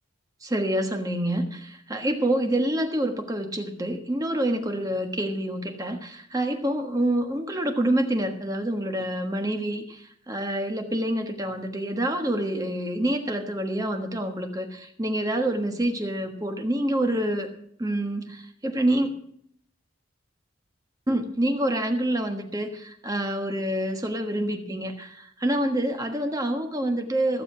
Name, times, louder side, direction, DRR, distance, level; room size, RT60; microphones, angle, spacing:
voice 1, 0.4-17.5 17.8-19.1 21.1-27.4, right 1 dB, 20° right, 4 dB, 1.4 m, -27 dB
15.5 x 6.9 x 7.0 m, 0.67 s
head